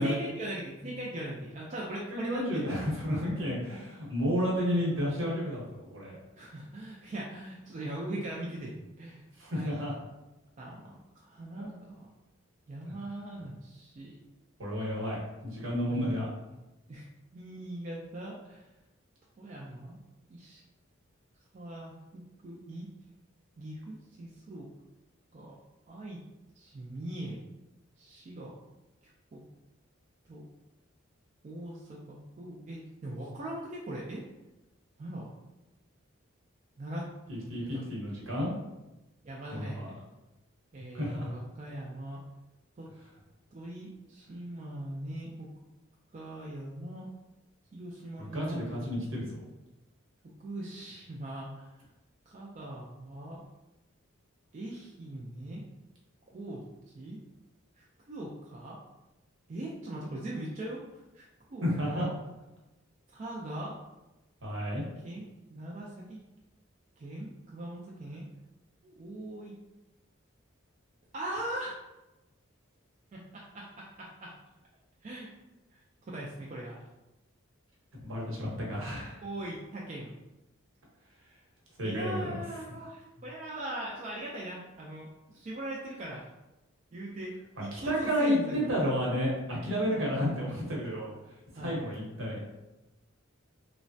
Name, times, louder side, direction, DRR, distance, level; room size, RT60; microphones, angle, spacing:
voice 1, 0.0-2.6 6.4-9.8 10.6-12.1 12.7-14.1 15.9-16.2 16.9-17.1 17.3-18.7 19.4-20.0 20.3-20.6 21.5-22.9 23.6-24.7 25.3-25.6 25.9-26.2 26.6-27.4 28.0-28.5 29.3-29.4 30.3-30.4 31.4-34.2 35.0-35.3 36.8-37.1 37.4-37.9 39.2-40.0 40.7-42.2 42.8-42.9 43.5-45.5 46.1-47.1 47.7-48.8 50.4-51.7 52.3-53.4 54.5-55.6 56.3-56.6 56.9-57.2 57.8-58.8 59.5-62.1 63.1-63.8 65.0-66.2 67.0-68.3 68.8-69.5 71.1-71.8 73.1-74.4 75.0-75.3 75.7-76.8 79.2-80.1 81.8-86.3 86.9-88.7 89.9-90.0 91.6-91.8, right 1 dB, 35° right, -4 dB, 0.3 m, -40 dB
voice 2, 1.9-6.2 9.4-9.9 11.5-11.7 14.6-16.3 37.3-38.5 39.5-39.9 40.9-41.3 48.3-49.4 61.6-62.1 64.4-64.8 78.0-79.2 81.8-82.3 87.7-91.1 91.5-92.4, equal, 70° right, -4 dB, 0.9 m, -31 dB
3.1 x 2.1 x 2.6 m, 1.0 s
head